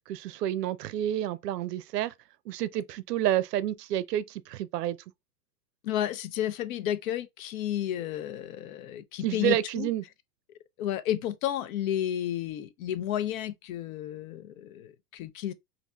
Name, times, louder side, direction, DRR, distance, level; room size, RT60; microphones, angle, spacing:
voice 1, 0.1-2.1 2.5-5.0 9.2-10.0, right 12 dB, 75° right, 0.6 m, -29 dB
voice 2, 5.8-9.9 10.8-15.5, left 11 dB, 55° left, 0.6 m, -32 dB
4.0 x 2.7 x 2.2 m
hypercardioid pair, 115°, 49 cm